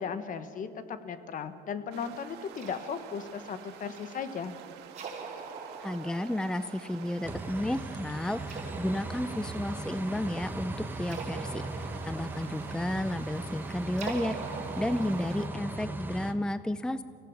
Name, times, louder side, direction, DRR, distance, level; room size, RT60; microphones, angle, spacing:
voice 1, 0.0-4.5, left 6 dB, 50° left, 10 dB, 1.4 m, -36 dB
sound 1, 1.9-15.5, right 9 dB, 85° right, 1.7 m, -49 dB
sound 2, 2.5-15.9, right 4 dB, 40° right, 3.7 m, -45 dB
voice 2, 5.8-17.0, left 1 dB, 5° left, 13 dB, 0.5 m, -32 dB
sound 3, 7.2-16.3, right 2 dB, 10° right, 1.5 m, -38 dB
24.5 x 16.5 x 7.3 m, 2.3 s
cardioid pair, 110°, 17 cm